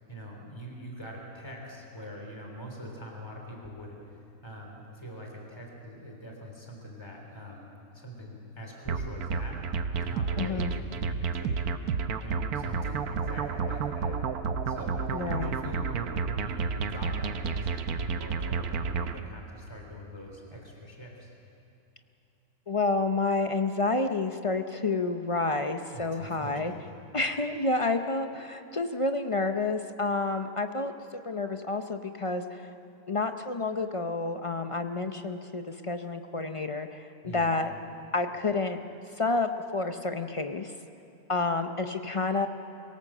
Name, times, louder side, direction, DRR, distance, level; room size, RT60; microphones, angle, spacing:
voice 1, 0.1-9.6 9.9-11.6 12.2-14.2 14.7-21.3 25.9-26.8 37.2-37.5, equal, 15° left, 0 dB, 3.5 m, -43 dB
sound 1, 8.9-19.2, right 5 dB, 80° right, 1.4 m, -31 dB
voice 2, 10.4-10.7 15.1-15.5 22.7-26.7 27.1-30.9 31.2-32.7 33.1-37.7 38.1-38.8 39.2-40.7 41.3-42.5, left 3 dB, 40° left, 7 dB, 0.4 m, -29 dB
23.5 x 17.0 x 7.4 m, 2.8 s
omnidirectional pair, 1.6 m